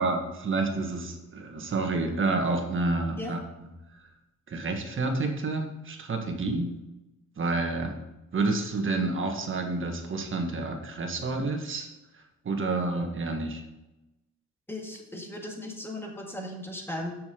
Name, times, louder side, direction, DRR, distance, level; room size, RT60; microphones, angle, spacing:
voice 1, 0.0-3.4 4.5-6.7 7.4-8.0 8.3-11.9 12.4-13.6, right 3 dB, 40° right, 4 dB, 1.6 m, -29 dB
voice 2, 14.7-17.1, left 1 dB, 10° left, 1 dB, 2.0 m, -37 dB
7.0 x 6.5 x 5.3 m, 0.97 s
cardioid pair, 90°, 30 cm